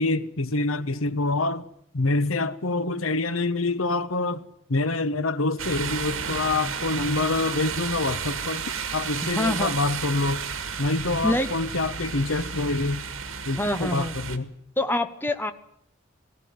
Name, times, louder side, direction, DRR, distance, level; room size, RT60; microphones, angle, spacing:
voice 1, 0.0-1.7 1.9-4.4 4.7-10.4 10.8-13.0 13.4-14.5, left 2 dB, 85° left, 1.1 m, -26 dB
sound 1, 5.6-14.4, right 6 dB, 85° right, 1.9 m, -32 dB
voice 2, 9.2-9.7 11.2-11.5 13.6-14.1 14.8-15.5, left 1 dB, 10° left, 0.8 m, -25 dB
18.5 x 17.5 x 9.3 m
head